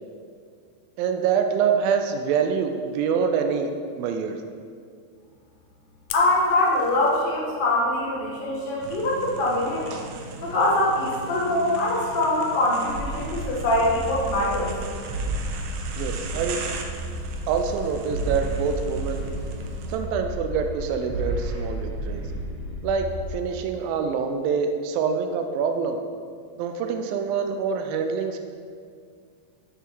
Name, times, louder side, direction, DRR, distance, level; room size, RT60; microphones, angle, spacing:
voice 1, 1.0-4.4 16.0-16.6 17.5-19.2 19.9-22.2 22.8-26.0 26.6-28.4, right 6 dB, 90° right, 5 dB, 2.4 m, -25 dB
Fire, 6.1-7.2, left 9 dB, 85° left, 2.5 m, -39 dB
voice 2, 6.1-10.0 10.4-14.7, left 1 dB, 70° left, -5 dB, 0.4 m, -23 dB
sound 1, 8.8-20.0, right 4 dB, 70° right, 2.0 m, -39 dB
sound 2, 12.9-23.3, right 1 dB, 55° right, 1.7 m, -32 dB
9.6 x 6.7 x 4.7 m, 2.2 s
omnidirectional pair, 4.1 m